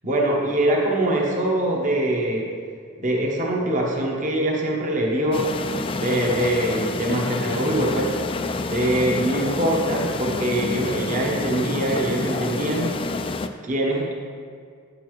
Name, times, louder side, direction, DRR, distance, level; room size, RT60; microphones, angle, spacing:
voice 1, 0.0-2.6 3.0-5.5 6.0-8.2 8.7-12.9 13.6-14.1, right 1 dB, 40° right, -2 dB, 1.0 m, -23 dB
sound 1, 5.3-13.5, left 3 dB, 25° left, 0.3 m, -28 dB
9.7 x 6.8 x 3.1 m, 2.2 s
head